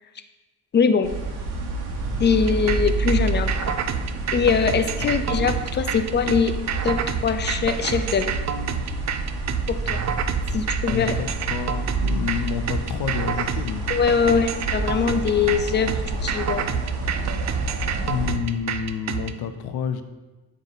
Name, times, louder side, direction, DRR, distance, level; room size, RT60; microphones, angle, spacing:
voice 1, 0.7-1.1 2.2-3.8 4.3-6.6 6.8-8.3 9.7-10.0 10.5-11.1 13.9-16.7, left 6 dB, 30° left, 9 dB, 0.4 m, -22 dB
sound 1, 1.0-18.3, right 2 dB, 90° right, 1.3 m, -29 dB
sound 2, 2.5-19.3, right 8 dB, 45° right, 0.4 m, -29 dB
voice 2, 10.9-13.9 14.2-14.4 18.0-20.0, left 8 dB, 75° left, 9 dB, 0.6 m, -29 dB
8.9 x 3.7 x 4.0 m, 1.2 s
cardioid pair, 115°, 39 cm